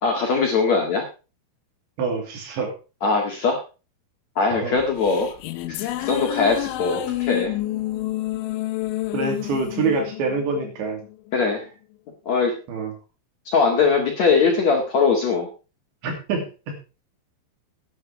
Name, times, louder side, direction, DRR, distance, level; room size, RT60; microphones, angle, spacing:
voice 1, 0.0-1.0 3.0-3.6 4.4-5.3 5.7-7.5 11.3-11.7 12.3-12.5 13.5-15.5, left 4 dB, 50° left, 1 dB, 2.3 m, -21 dB
voice 2, 2.0-2.7 4.5-4.8 9.1-11.0 12.7-12.9 16.0-16.7, right 4 dB, 70° right, 4 dB, 4.9 m, -26 dB
sound 1, 4.8-11.3, left 16 dB, 85° left, 3.3 m, -29 dB
11.5 x 9.8 x 4.7 m, 0.33 s
omnidirectional pair, 5.4 m